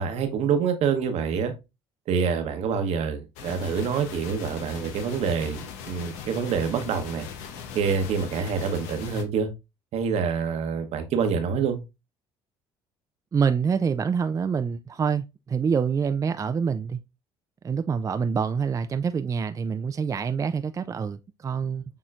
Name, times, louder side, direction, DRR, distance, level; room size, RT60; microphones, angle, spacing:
voice 1, 0.0-1.5 2.1-7.3 7.7-9.5 9.9-11.8, right 6 dB, 65° right, 1.0 m, -26 dB
sound 1, 3.4-9.2, left 7 dB, 85° left, 0.8 m, -40 dB
voice 2, 13.3-17.0 17.6-21.8, right 6 dB, 30° right, 0.3 m, -26 dB
6.7 x 3.0 x 2.4 m
supercardioid pair, 75°, 12 cm